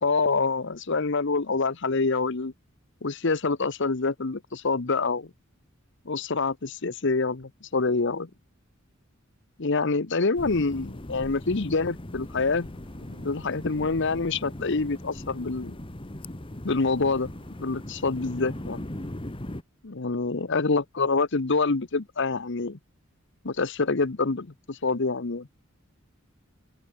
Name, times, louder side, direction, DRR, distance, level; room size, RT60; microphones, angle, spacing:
voice 1, 0.0-2.5 3.0-5.3 6.1-8.3 9.6-12.7 13.1-15.8 16.6-17.3 17.6-18.8 19.8-22.8 23.4-25.5, left 3 dB, 60° left, 1.0 m, -26 dB
sound 1, 10.3-19.6, left 1 dB, 25° left, 1.3 m, -39 dB
sound 2, 12.5-19.1, equal, 20° right, 7.1 m, -54 dB
open air
head